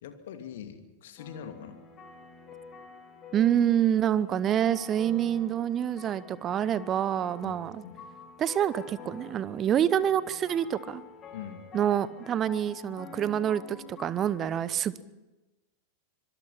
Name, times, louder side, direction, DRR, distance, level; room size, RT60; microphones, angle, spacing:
voice 1, 0.0-1.8 7.4-8.1 11.3-11.7, left 8 dB, 55° left, 7 dB, 2.6 m, -43 dB
sound 1, 1.2-14.5, left 4 dB, 25° left, 4.2 m, -48 dB
voice 2, 3.3-7.8 8.4-11.0 11.7-15.0, right 10 dB, 30° right, 18 dB, 0.9 m, -27 dB
25.5 x 23.0 x 5.7 m, 1.1 s
figure-of-eight pair, 90°, 0 cm